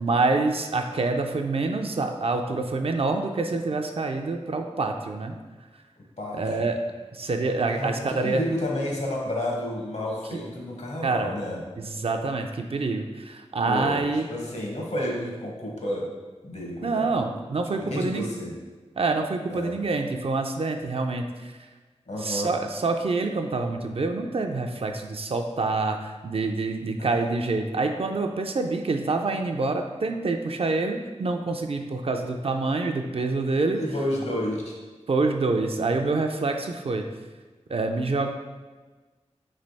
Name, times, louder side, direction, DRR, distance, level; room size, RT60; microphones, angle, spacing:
voice 1, 0.0-5.4 6.3-6.8 7.1-8.4 11.0-11.3 11.8-14.3 16.8-18.3 19.0-21.2 22.2-33.8 35.1-37.0 37.7-38.3, right 3 dB, 55° right, 4 dB, 0.4 m, -26 dB
voice 2, 6.2-6.7 7.7-11.6 13.6-16.1 16.4-17.1 17.8-18.5 19.5-19.8 22.1-22.5 27.0-27.1 32.2-32.3 33.7-34.8, left 1 dB, 65° left, -2 dB, 0.9 m, -31 dB
3.2 x 3.0 x 4.0 m, 1.3 s
wide cardioid pair, 60°, 12 cm